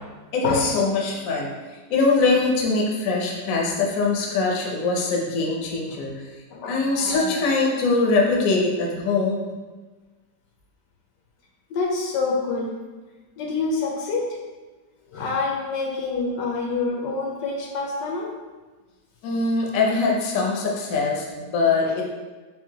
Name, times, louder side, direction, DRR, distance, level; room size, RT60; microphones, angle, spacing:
voice 1, 0.3-1.5 1.9-6.3 6.7-9.4 19.2-22.1, left 3 dB, 60° left, -1 dB, 1.1 m, -22 dB
voice 2, 6.5-7.4 11.7-12.7 13.4-14.3 15.1-18.3, left 3 dB, 80° left, -1 dB, 1.4 m, -27 dB
4.6 x 4.1 x 2.9 m, 1.3 s
omnidirectional pair, 1.8 m